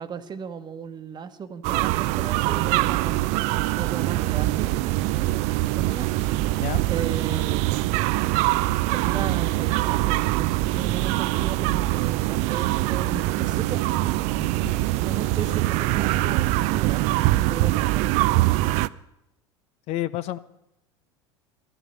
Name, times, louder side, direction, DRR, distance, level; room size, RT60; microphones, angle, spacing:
voice 1, 0.0-3.2 3.8-4.7 5.8-6.1 6.9-7.8 8.9-14.3 15.0-17.1 17.3-18.1, right 7 dB, 30° right, 9 dB, 1.1 m, -35 dB
sound 1, 1.6-18.9, right 17 dB, 55° right, 0.4 m, -23 dB
voice 2, 14.3-14.7 19.9-20.4, left 14 dB, 50° left, 15 dB, 0.6 m, -30 dB
13.0 x 11.5 x 6.7 m, 0.87 s
hypercardioid pair, 80°, 14 cm